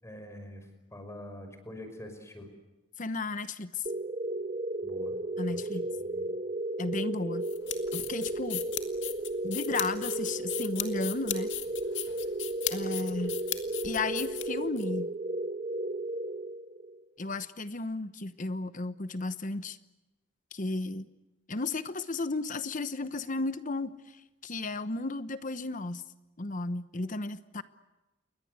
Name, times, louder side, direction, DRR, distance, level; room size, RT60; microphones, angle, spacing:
voice 1, 0.0-2.5 4.8-5.2 5.5-5.6 6.0-6.3, left 1 dB, 15° left, 7 dB, 5.8 m, -45 dB
voice 2, 3.0-3.8 5.4-5.9 6.8-7.5 7.9-8.7 9.4-11.5 12.7-13.4 13.8-15.1 17.2-19.8 20.5-21.1 21.5-26.0 26.4-27.6, left 3 dB, 40° left, 13 dB, 1.0 m, -34 dB
sound 1, 3.9-17.0, right 2 dB, 35° right, 0.8 m, -34 dB
sound 2, 7.4-14.8, left 13 dB, 65° left, 2.3 m, -37 dB
29.0 x 22.5 x 8.1 m, 1.0 s
head